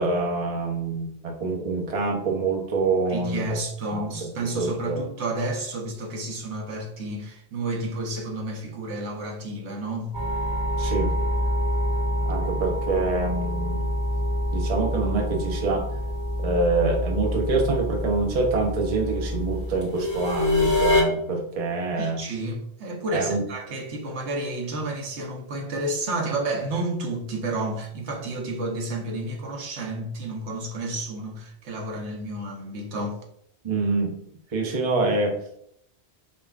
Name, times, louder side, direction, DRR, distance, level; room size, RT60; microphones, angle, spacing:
voice 1, 0.0-3.4 3.9-4.1 4.4-5.0 10.8-11.1 12.2-13.9 14.5-15.8 16.4-22.2 23.1-23.4 33.6-34.1 34.5-35.4, right 3 dB, 40° right, 0.6 m, -26 dB
voice 2, 3.1-10.2 21.9-33.2, right 2 dB, 85° right, 1.1 m, -31 dB
sound 1, 10.1-21.0, left 1 dB, 15° left, 1.2 m, -26 dB
5.3 x 2.4 x 2.3 m
omnidirectional pair, 1.1 m